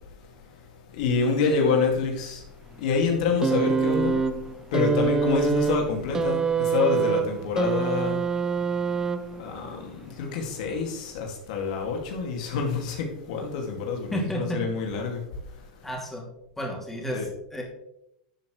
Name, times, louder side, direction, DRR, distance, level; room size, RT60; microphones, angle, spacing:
voice 1, 0.9-2.4 2.8-4.2 4.7-8.2 9.4-15.3 17.1-17.3, left 5 dB, 70° left, 2.3 m, -27 dB
sound 1, 3.4-9.6 10.6-10.7, right 6 dB, 15° right, 0.7 m, -25 dB
voice 2, 14.1-14.6 15.8-16.2 16.6-17.6, equal, 5° left, 2.8 m, -31 dB
12.0 x 7.5 x 3.3 m
hypercardioid pair, 115°, 4 cm